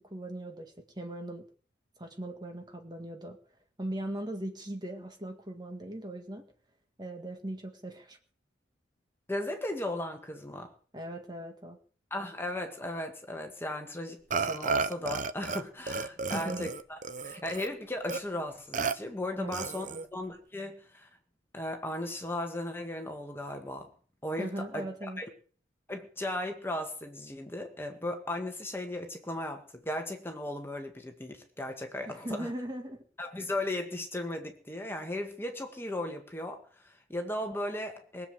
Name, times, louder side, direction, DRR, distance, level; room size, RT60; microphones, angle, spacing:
voice 1, 0.0-1.5 2.0-3.4 3.8-6.4 7.0-8.2 10.9-11.8 16.3-16.7 19.4-20.1 24.4-25.2 32.1-33.0, right 1 dB, 20° right, 5 dB, 1.8 m, -39 dB
voice 2, 9.3-10.7 12.1-19.9 20.1-21.1 21.5-23.9 24.2-25.3 25.9-32.5 33.2-38.3, left 1 dB, 10° left, 4 dB, 1.8 m, -36 dB
Burping eructation, 14.3-15.6 15.9-17.7 18.1-18.2 18.7-18.9 19.5-20.1, right 4 dB, 40° right, 0.7 m, -32 dB
21.0 x 7.6 x 8.0 m, 0.43 s
head